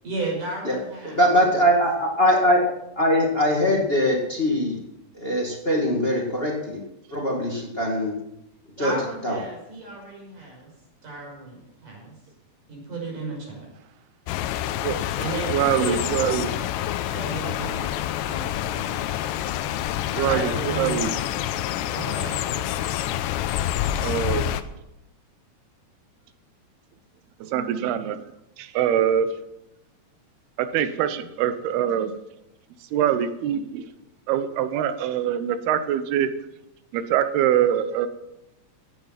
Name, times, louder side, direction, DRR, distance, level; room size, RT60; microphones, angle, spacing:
voice 1, 0.0-1.2 8.8-10.7 11.0-12.1 12.7-13.6 15.2-16.6 17.1-19.0 20.0-21.2 21.9-22.9, right 2 dB, 50° right, -1 dB, 7.0 m, -34 dB
voice 2, 1.0-2.7 2.9-4.8 5.1-6.8 7.1-8.2 8.8-8.9 9.2-9.4, equal, 35° left, -1 dB, 0.9 m, -22 dB
sound 1, 14.3-24.6, left 12 dB, 85° left, 2.8 m, -27 dB
voice 3, 15.5-16.7 20.2-21.1 21.7-21.8 24.0-24.5 27.4-28.2 28.6-29.3 30.6-32.1 32.9-33.9 34.3-36.3 36.9-38.1, right 9 dB, 75° right, 11 dB, 2.8 m, -24 dB
16.0 x 10.5 x 5.8 m, 0.87 s
omnidirectional pair, 4.9 m